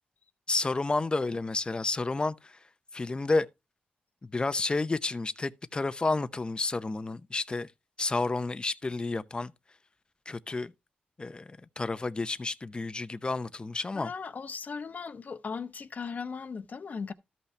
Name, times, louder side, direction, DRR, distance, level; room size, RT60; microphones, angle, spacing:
voice 1, 0.5-2.5 2.9-3.5 4.2-7.7 8.0-9.5 10.3-10.7 11.2-14.1, left 3 dB, 30° left, 0.7 m, -30 dB
voice 2, 13.9-17.1, left 5 dB, 55° left, 0.9 m, -37 dB
13.5 x 5.7 x 3.2 m
cardioid pair, 80°, 3 cm